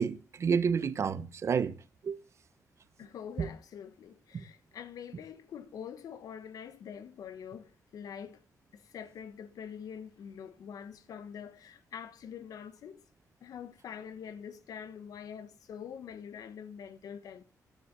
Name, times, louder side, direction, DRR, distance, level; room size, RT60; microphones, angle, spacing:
voice 1, 0.0-1.8 2.0-2.2 3.4-3.5 4.3-4.4, right 6 dB, 50° right, 1.1 m, -29 dB
voice 2, 3.0-8.4 8.7-13.0 13.4-17.4, left 8 dB, 85° left, 1.3 m, -45 dB
13.5 x 11.0 x 6.8 m
wide cardioid pair, 145°, 6 cm